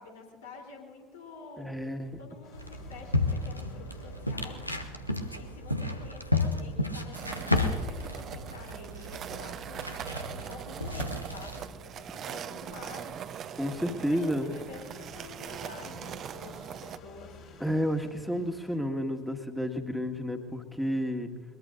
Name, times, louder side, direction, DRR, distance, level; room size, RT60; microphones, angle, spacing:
voice 1, 0.0-1.8 2.2-5.0 5.4-13.3 14.0-17.3, left 4 dB, 70° left, 0 dB, 3.5 m, -48 dB
voice 2, 1.6-2.1 13.6-14.5 17.6-21.3, equal, ahead, 4 dB, 1.7 m, -31 dB
sound 1, 2.4-18.8, left 4 dB, 50° left, 3.5 m, -55 dB
sound 2, 2.5-11.7, left 2 dB, 90° left, 0.8 m, -32 dB
sound 3, 7.1-17.0, right 9 dB, 45° right, 0.8 m, -41 dB
22.0 x 22.0 x 2.6 m, 1.4 s
figure-of-eight pair, 60°, 0 cm